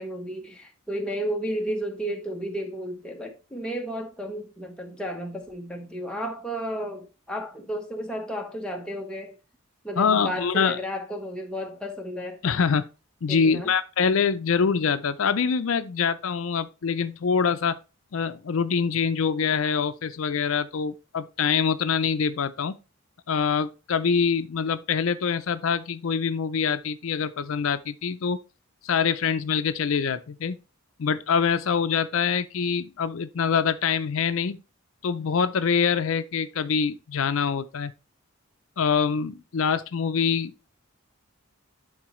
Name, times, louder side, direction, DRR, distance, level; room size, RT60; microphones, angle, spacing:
voice 1, 0.0-9.4 9.8-12.4 13.3-13.7, equal, 5° left, 1.1 m, -33 dB
voice 2, 10.0-10.8 12.4-12.9 13.2-17.8 18.1-22.8 23.3-28.4 28.8-30.6 31.0-34.6 35.0-37.9 38.8-40.5, left 6 dB, 70° left, 0.5 m, -25 dB
11.5 x 3.9 x 3.1 m
head